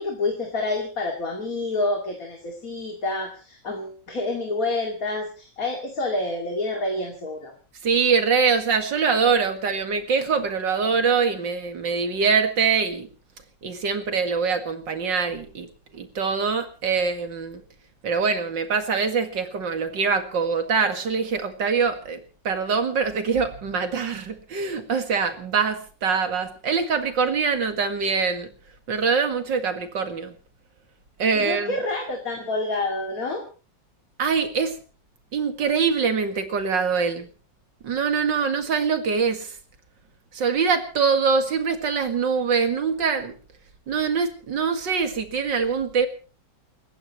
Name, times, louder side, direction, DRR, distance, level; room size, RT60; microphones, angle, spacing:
voice 1, 0.0-7.5 31.3-33.4, left 2 dB, 50° left, 1 dB, 2.9 m, -28 dB
voice 2, 7.8-13.1 13.6-15.7 15.9-17.6 18.0-22.2 22.4-28.5 28.9-30.4 31.2-31.7 34.2-34.8 35.3-37.3 37.8-39.6 40.3-43.3 43.9-46.1, right 5 dB, 75° right, 7 dB, 2.6 m, -24 dB
30.0 x 15.0 x 3.1 m, 0.37 s
omnidirectional pair, 2.0 m